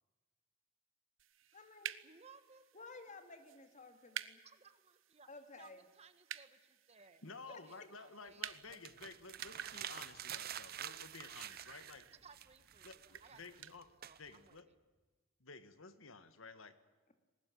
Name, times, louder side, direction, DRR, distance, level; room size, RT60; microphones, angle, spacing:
sound 1, 1.2-13.8, right 10 dB, 80° right, 1.0 m, -52 dB
voice 1, 1.5-1.9 2.7-4.4 5.3-5.8 7.5-7.6, left 3 dB, 40° left, 7 dB, 2.4 m, -54 dB
voice 2, 2.0-2.7 3.1-3.2 3.9-4.2 4.4-8.9 12.1-13.7 14.0-14.6, right 5 dB, 30° right, 10 dB, 1.5 m, -63 dB
voice 3, 7.2-12.1 12.8-13.9 14.2-14.7 15.4-16.8, left 4 dB, 85° left, 10 dB, 1.7 m, -53 dB
Wind, 8.2-15.2, right 1 dB, ahead, 5.1 m, -77 dB
sound 2, 8.5-12.1 12.3-14.6, right 10 dB, 50° right, 0.7 m, -48 dB
21.0 x 19.0 x 9.4 m, 1.2 s
head